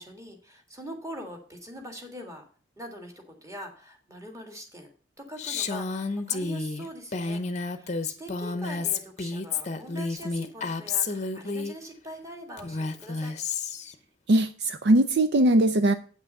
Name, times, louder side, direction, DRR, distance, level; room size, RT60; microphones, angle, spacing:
voice 1, 0.0-2.4 2.8-4.9 5.2-13.4, equal, 15° right, 3 dB, 1.8 m, -43 dB
Female speech woman speaking, 5.4-11.7 12.6-13.9, left 4 dB, 35° left, 0.8 m, -30 dB
voice 2, 14.3-15.9, right 1 dB, 55° right, 10 dB, 0.5 m, -20 dB
8.6 x 6.1 x 5.4 m, 0.41 s
head